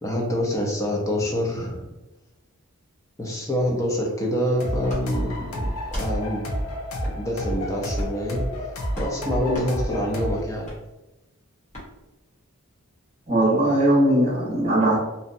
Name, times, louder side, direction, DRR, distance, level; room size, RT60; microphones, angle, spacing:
voice 1, 0.0-1.9 3.2-6.5 7.2-8.5 9.0-10.7, equal, 15° left, -1 dB, 0.5 m, -26 dB
sound 1, 4.6-10.4, equal, 70° left, 0.5 m, -30 dB
sound 2, 4.8-5.0 5.8-6.1 7.0-7.2 7.9-8.2 8.9-9.1 9.5-9.7 10.6-10.8 11.7-11.9, equal, 35° left, 0.9 m, -33 dB
voice 2, 13.3-15.0, right 1 dB, 30° right, -6 dB, 0.8 m, -19 dB
2.7 x 2.1 x 2.5 m, 1.0 s
head